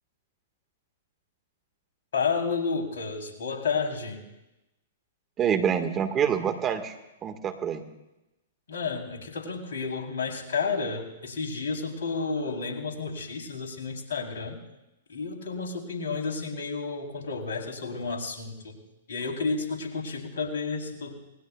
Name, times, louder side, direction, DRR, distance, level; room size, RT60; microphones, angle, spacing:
voice 1, 2.1-4.2 8.7-14.6 15.1-18.8 19.1-21.2, left 4 dB, 70° left, 1 dB, 3.7 m, -31 dB
voice 2, 5.4-6.9 7.2-7.8, right 8 dB, 25° right, 7 dB, 1.8 m, -26 dB
26.5 x 19.5 x 2.4 m, 0.95 s
hypercardioid pair, 115°, 0 cm